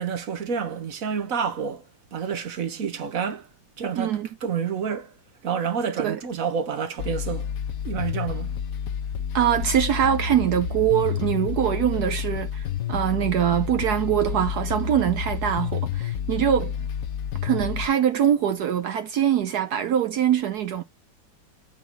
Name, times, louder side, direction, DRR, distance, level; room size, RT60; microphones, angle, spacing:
voice 1, 0.0-1.8 2.1-3.5 3.8-5.1 5.4-7.5 7.8-8.5, right 6 dB, 50° right, 1.3 m, -29 dB
voice 2, 4.0-4.3 6.0-6.2 9.3-16.7 17.4-20.8, right 10 dB, 65° right, 1.1 m, -23 dB
sound 1, 7.0-17.9, left 8 dB, 55° left, 1.2 m, -30 dB
9.2 x 3.8 x 4.0 m
omnidirectional pair, 2.1 m